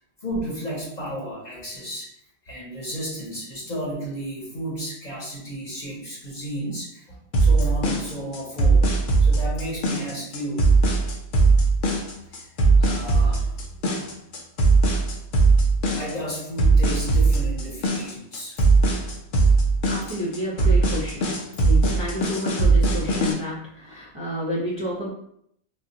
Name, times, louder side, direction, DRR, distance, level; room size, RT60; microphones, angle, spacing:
voice 1, 0.2-2.1 2.4-8.9 9.2-10.7 12.3-12.4 12.8-14.1 15.9-18.6, equal, 40° left, -6 dB, 0.9 m, -33 dB
sound 1, 7.3-23.3, right 3 dB, 60° left, 0.6 m, -19 dB
voice 2, 19.9-25.1, equal, 35° right, -7 dB, 0.5 m, -30 dB
2.5 x 2.1 x 3.7 m, 0.71 s
omnidirectional pair, 1.3 m